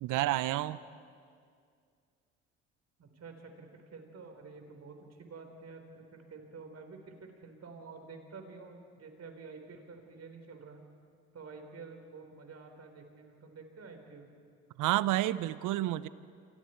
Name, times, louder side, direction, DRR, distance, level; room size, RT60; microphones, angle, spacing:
voice 1, 0.0-0.8 14.8-16.1, right 15 dB, 65° right, 17 dB, 0.8 m, -29 dB
voice 2, 3.0-10.8 11.3-14.3, right 4 dB, 50° right, 4 dB, 4.3 m, -49 dB
28.5 x 24.0 x 4.6 m, 2.2 s
hypercardioid pair, 60°, 34 cm